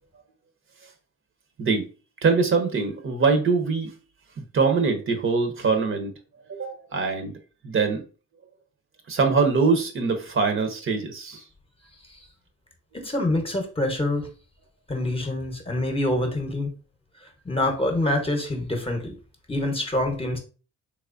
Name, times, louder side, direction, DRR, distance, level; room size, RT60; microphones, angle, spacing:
voice 1, 2.2-3.9 4.5-6.1 6.5-7.3 7.6-8.0 9.1-11.4, right 4 dB, 45° right, 6 dB, 0.8 m, -23 dB
voice 2, 13.0-14.3 14.9-16.7 17.4-19.1 19.5-20.4, left 1 dB, 20° left, 3 dB, 0.9 m, -25 dB
3.4 x 3.0 x 2.5 m, 0.36 s
cardioid pair, 90°, 30 cm